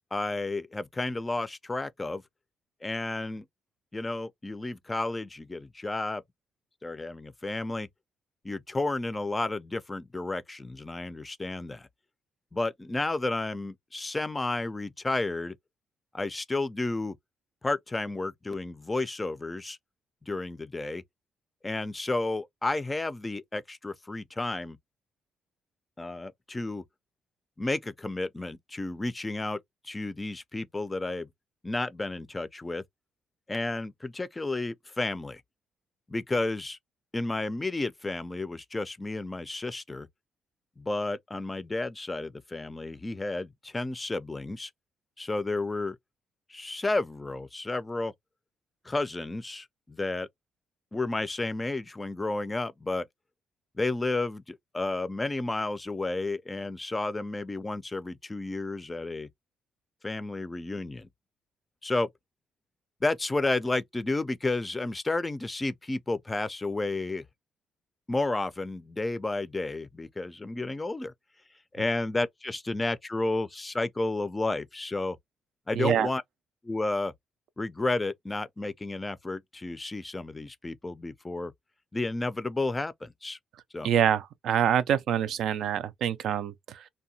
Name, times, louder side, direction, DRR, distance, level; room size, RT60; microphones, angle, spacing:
voice 1, 0.1-2.2 2.8-3.4 3.9-6.2 6.8-7.9 8.4-11.9 12.5-15.5 16.1-17.1 17.6-19.8 20.2-21.0 21.6-24.8 26.0-26.8 27.6-29.6 29.8-31.3 31.6-32.8 33.5-35.4 36.1-36.8 37.1-40.1 40.8-44.7 45.2-46.0 46.5-48.1 48.9-50.3 50.9-53.1 53.8-59.3 60.0-61.1 61.8-62.1 63.0-67.2 68.1-71.1 71.7-75.2 75.7-76.2 76.6-77.1 77.6-81.5 81.9-83.4 83.7-83.9, left 2 dB, 20° left, 0.4 m, -32 dB
voice 2, 75.7-76.1 83.8-86.9, right 9 dB, 75° right, 0.3 m, -26 dB
2.7 x 2.2 x 2.7 m
cardioid pair, 90°, 0 cm